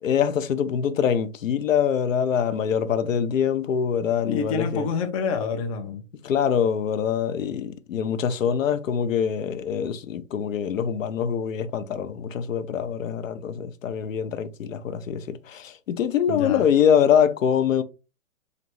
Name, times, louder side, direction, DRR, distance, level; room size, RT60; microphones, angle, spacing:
voice 1, 0.0-4.9 6.2-17.8, left 8 dB, 70° left, 0.7 m, -24 dB
voice 2, 4.3-6.0 16.3-16.6, left 5 dB, 25° left, 0.5 m, -27 dB
3.9 x 3.3 x 3.0 m
hypercardioid pair, 140°, 40 cm